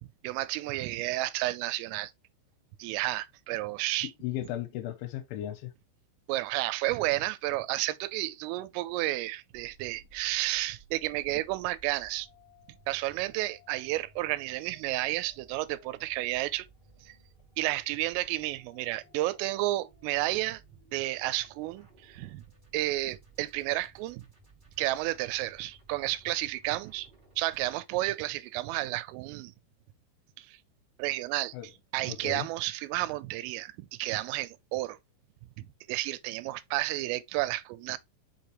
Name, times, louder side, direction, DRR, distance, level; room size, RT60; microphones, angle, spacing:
voice 1, 0.0-2.1 2.8-4.1 6.3-12.3 12.9-16.7 17.0-17.2 17.6-20.6 20.9-22.4 22.7-24.3 24.8-27.1 27.4-29.5 30.4-30.6 31.0-35.0 35.6-38.0, right 17 dB, 85° right, 3.3 m, -32 dB
voice 2, 4.2-5.7 31.5-31.7 32.1-32.5, left 13 dB, 80° left, 3.0 m, -36 dB
sound 1, 9.5-27.7, right 2 dB, 40° right, 0.6 m, -59 dB
6.5 x 5.7 x 3.1 m
omnidirectional pair, 5.8 m